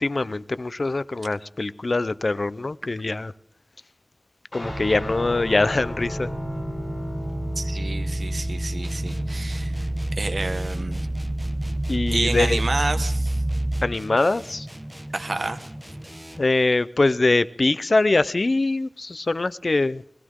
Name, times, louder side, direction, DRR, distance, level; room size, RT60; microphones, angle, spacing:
voice 1, 0.0-3.3 4.5-6.3 11.9-12.6 13.8-14.7 16.4-20.0, left 2 dB, 65° left, 0.6 m, -23 dB
Guitar, 4.5-13.3, left 1 dB, 45° left, 7.8 m, -37 dB
sound 1, 4.6-13.9, right 1 dB, 45° right, 0.8 m, -28 dB
voice 2, 7.5-11.0 12.1-13.4 15.1-15.6, right 2 dB, 75° right, 1.5 m, -30 dB
sound 2, 8.8-16.6, right 1 dB, 10° right, 1.1 m, -39 dB
21.5 x 16.5 x 3.7 m
wide cardioid pair, 60°, 0 cm